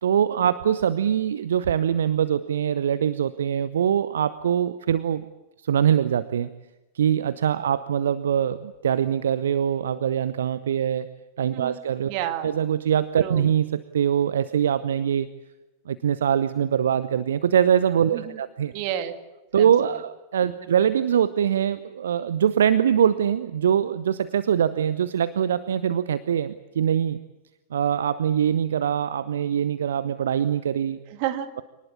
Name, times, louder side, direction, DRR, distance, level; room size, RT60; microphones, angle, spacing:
voice 1, 0.0-5.2 5.6-6.5 6.9-11.1 11.4-12.1 12.4-13.7 13.9-15.3 15.9-18.7 19.5-27.2 27.7-31.0, right 9 dB, 65° right, 14 dB, 0.7 m, -23 dB
voice 2, 12.1-12.5 13.2-13.5 18.1-18.4 18.7-19.1 19.5-19.7 19.9-20.0 20.4-20.6 31.1-31.5, right 11 dB, 45° right, 7 dB, 2.1 m, -31 dB
25.0 x 19.0 x 8.5 m, 1.0 s
figure-of-eight pair, 90°, 0 cm